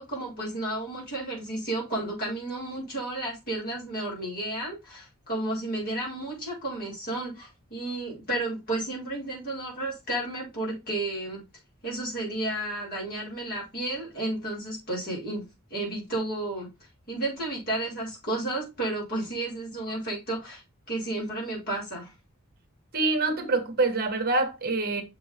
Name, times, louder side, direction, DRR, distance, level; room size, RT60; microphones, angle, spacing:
voice 1, 0.0-11.4 11.8-15.4 15.7-16.7 17.1-20.6 20.9-22.1, right 2 dB, 45° left, 4.3 m, -32 dB
voice 2, 22.9-25.0, right 3 dB, 45° right, 1.4 m, -25 dB
6.6 x 3.7 x 4.1 m
head